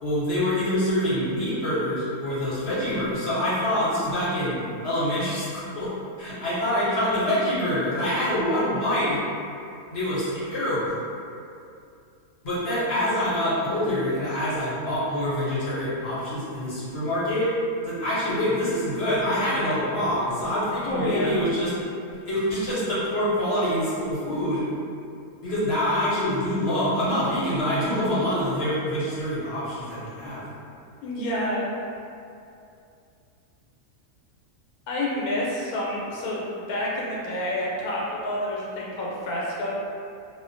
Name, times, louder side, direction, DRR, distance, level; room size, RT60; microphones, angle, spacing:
voice 1, 0.0-5.9 6.2-9.2 9.9-10.9 12.4-17.5 17.8-21.7 22.3-24.7 25.4-30.4, equal, 55° left, -11 dB, 0.9 m, -25 dB
voice 2, 20.9-21.4 31.0-31.7 34.9-39.7, left 1 dB, 85° left, -4 dB, 1.1 m, -28 dB
2.3 x 2.1 x 2.5 m, 2.6 s
omnidirectional pair, 1.5 m